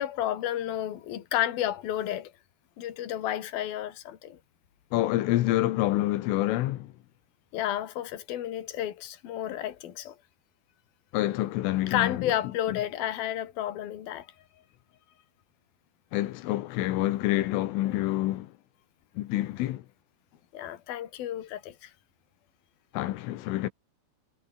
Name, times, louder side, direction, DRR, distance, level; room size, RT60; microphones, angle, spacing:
voice 1, 0.0-2.3 2.8-4.4 7.5-10.2 11.9-14.3 17.8-18.0 20.5-21.9, left 12 dB, 55° left, 3.8 m, -31 dB
voice 2, 4.9-6.9 11.1-12.3 16.1-18.5 19.2-19.8 22.9-23.7, left 16 dB, 85° left, 3.8 m, -27 dB
omnidirectional pair, 5.7 m